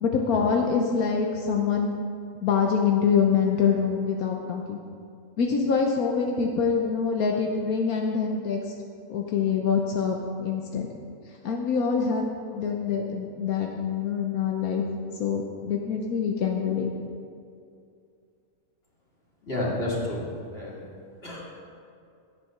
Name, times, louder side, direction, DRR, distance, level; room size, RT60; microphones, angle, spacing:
voice 1, 0.0-1.9 2.4-4.8 5.4-8.6 9.1-10.9 11.4-12.3 12.5-14.8 15.2-16.9, left 6 dB, 85° left, 1 dB, 1.4 m, -25 dB
voice 2, 19.4-20.8 21.2-21.4, left 1 dB, 45° left, -6 dB, 3.1 m, -30 dB
12.0 x 8.5 x 5.9 m, 2.4 s
omnidirectional pair, 1.5 m